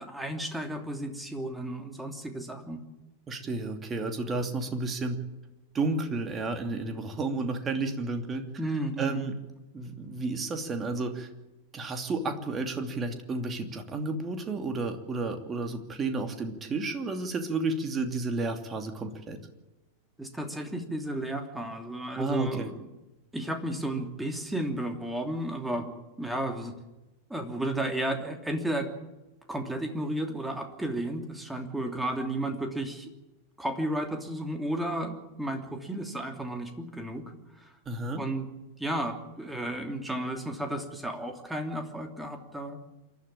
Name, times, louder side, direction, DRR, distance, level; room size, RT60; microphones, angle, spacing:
voice 1, 0.0-2.8 8.6-9.3 20.2-22.9 23.3-26.7 27.3-28.9 29.5-33.1 33.6-37.2 37.6-37.7 38.1-38.5 38.8-42.8, right 1 dB, 5° right, 4 dB, 3.0 m, -33 dB
voice 2, 3.3-5.2 5.7-8.4 9.0-9.4 9.7-11.3 11.7-19.4 22.1-22.7 37.9-38.2, right 3 dB, 20° right, 6 dB, 2.7 m, -32 dB
28.0 x 12.0 x 8.9 m, 1.0 s
figure-of-eight pair, 90°, 0 cm